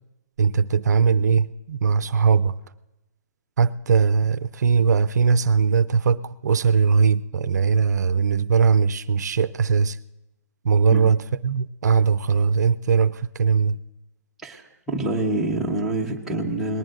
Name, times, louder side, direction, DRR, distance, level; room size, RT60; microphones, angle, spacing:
voice 1, 0.4-2.6 3.6-10.0 10.6-13.8, right 5 dB, 90° right, 0.5 m, -20 dB
voice 2, 14.4-16.8, right 2 dB, 5° right, 1.1 m, -26 dB
28.0 x 20.0 x 2.6 m
hypercardioid pair, 170°, 9 cm